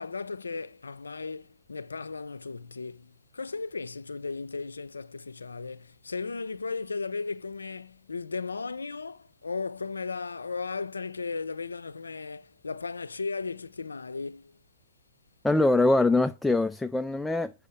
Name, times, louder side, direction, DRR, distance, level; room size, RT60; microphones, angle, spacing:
voice 1, 0.0-14.5, left 4 dB, 80° left, 0.5 m, -36 dB
voice 2, 15.4-17.5, left 2 dB, 5° left, 0.4 m, -23 dB
7.2 x 4.9 x 6.5 m
figure-of-eight pair, 115°, 0 cm